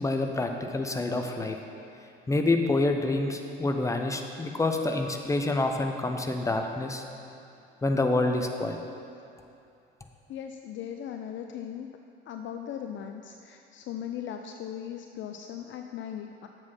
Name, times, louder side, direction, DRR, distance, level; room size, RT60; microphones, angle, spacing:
voice 1, 0.0-1.6 2.3-7.0 7.8-8.8, left 2 dB, 10° left, 4 dB, 0.8 m, -27 dB
voice 2, 10.3-11.9 12.3-16.5, left 9 dB, 40° left, 5 dB, 0.5 m, -38 dB
7.5 x 6.2 x 5.8 m, 2.7 s
figure-of-eight pair, 60°, 30 cm